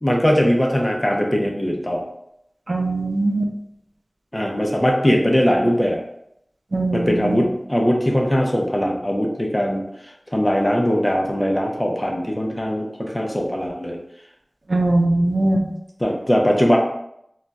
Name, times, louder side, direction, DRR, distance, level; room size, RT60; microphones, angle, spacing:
voice 1, 0.0-2.0 4.3-6.0 6.9-9.8 10.3-14.0 16.0-16.8, equal, 25° left, 1 dB, 0.5 m, -20 dB
voice 2, 2.7-3.5 6.7-7.4 14.7-15.7, right 2 dB, 70° right, 1 dB, 0.4 m, -20 dB
2.3 x 2.2 x 3.9 m, 0.77 s
wide cardioid pair, 55°, 0 cm